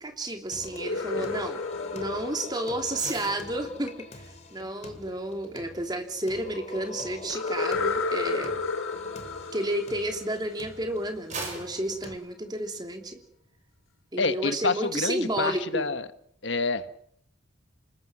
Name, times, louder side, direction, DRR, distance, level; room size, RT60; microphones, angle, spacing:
voice 1, 0.0-1.6 1.9-8.6 9.5-13.2 14.1-15.9, right 1 dB, 20° right, 4 dB, 2.9 m, -31 dB
Singing, 0.5-12.1, left 2 dB, 35° left, 2.6 m, -43 dB
sound 1, 0.7-3.6 7.3-11.0, left 4 dB, 80° left, 3.2 m, -32 dB
sound 2, 2.9-10.3 10.8-13.1 13.5-13.7, right 4 dB, 35° right, 6.9 m, -45 dB
voice 2, 14.2-16.1 16.4-16.9, left 3 dB, 60° left, 10 dB, 1.5 m, -28 dB
27.0 x 21.0 x 6.2 m, 0.67 s
head